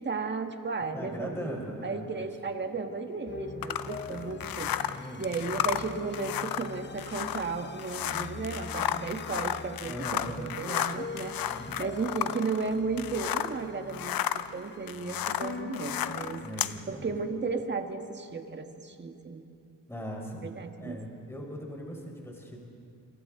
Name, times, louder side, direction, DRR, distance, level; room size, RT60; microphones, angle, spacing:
voice 1, 0.0-16.4 16.9-19.4 20.4-21.0, right 4 dB, 30° right, 5 dB, 1.6 m, -34 dB
voice 2, 0.9-2.3 4.1-5.3 9.8-10.4 11.4-11.7 16.4-17.1 19.9-20.5 20.8-22.6, equal, 5° left, 0 dB, 4.3 m, -40 dB
sound 1, 3.3-16.5, left 4 dB, 30° left, 0.9 m, -43 dB
sound 2, 3.6-13.6 13.9-16.8, left 11 dB, 80° left, 0.7 m, -33 dB
28.0 x 27.0 x 3.8 m, 2.5 s
cardioid pair, 105°, 34 cm